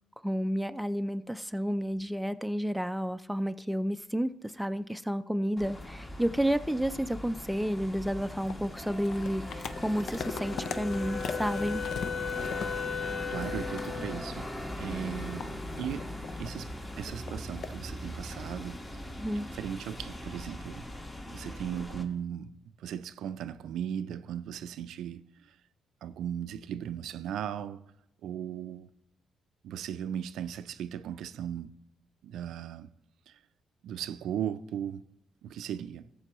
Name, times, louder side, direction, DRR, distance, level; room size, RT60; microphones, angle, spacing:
voice 1, 0.2-11.8 19.2-19.5, equal, ahead, 0.4 m, -31 dB
sound 1, 5.6-22.0, left 1 dB, 25° left, 1.4 m, -40 dB
sound 2, 8.4-13.5 13.8-14.0 14.5-16.5 17.1-17.7, left 6 dB, 65° left, 0.5 m, -40 dB
Wind instrument woodwind instrument, 10.2-14.2, left 7 dB, 90° left, 0.9 m, -37 dB
voice 2, 13.3-14.5 14.8-16.1 16.4-19.0 19.3-20.9 21.3-25.2 26.0-27.8 28.2-28.9 29.6-31.7 32.2-32.9 33.8-35.1 35.4-36.1, right 9 dB, 80° right, 0.4 m, -37 dB
14.0 x 6.9 x 3.0 m
cardioid pair, 90°, 0 cm